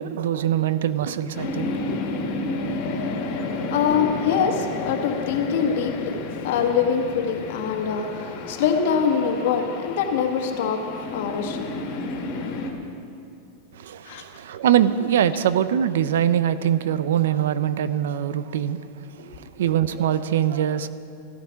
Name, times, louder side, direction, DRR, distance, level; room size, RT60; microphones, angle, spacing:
voice 1, 0.0-2.0 13.7-18.8 19.2-20.9, right 10 dB, 85° right, 0.6 m, -23 dB
sound 1, 1.3-12.7, left 3 dB, 40° left, 2.0 m, -31 dB
voice 2, 3.7-6.2 6.4-8.1 8.5-10.8 11.1-11.7 14.0-14.2 19.2-19.3, left 7 dB, 55° left, 1.5 m, -23 dB
14.5 x 13.0 x 5.8 m
supercardioid pair, 175°, 0 cm